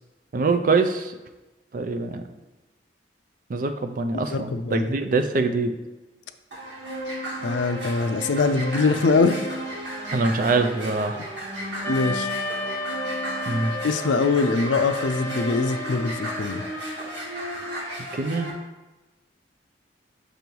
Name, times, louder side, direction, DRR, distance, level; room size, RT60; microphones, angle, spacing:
voice 1, 0.3-1.1 1.7-2.2 3.5-5.7 10.1-11.2 13.4-13.8 18.1-18.5, right 3 dB, 50° right, 7 dB, 0.4 m, -24 dB
voice 2, 4.1-4.9 7.4-9.4 11.9-12.3 13.8-16.6, left 4 dB, 85° left, 9 dB, 0.4 m, -23 dB
ooh ahh processed, 6.5-18.5, right 1 dB, 80° right, 1.7 m, -33 dB
Wind instrument woodwind instrument, 11.8-16.7, left 2 dB, 10° left, 0.6 m, -33 dB
6.6 x 3.1 x 5.3 m, 1.1 s
head